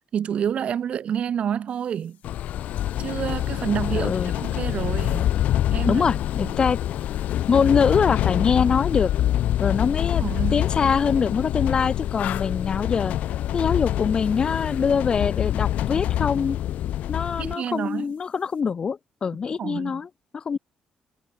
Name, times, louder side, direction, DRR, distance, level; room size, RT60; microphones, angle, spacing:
voice 1, 0.1-2.2 3.0-5.3 5.7-6.0 6.4-6.5 10.2-10.7 17.4-18.1 19.6-20.0, right 8 dB, 50° right, 3.1 m, -28 dB
sound 1, 2.2-17.5, left 12 dB, 75° left, 7.5 m, -25 dB
voice 2, 3.9-4.3 5.9-6.8 7.5-9.1 9.6-10.2 10.5-13.1 13.5-16.6 17.1-20.1 20.3-20.6, left 6 dB, 35° left, 3.3 m, -23 dB
cardioid pair, 135°, 3 cm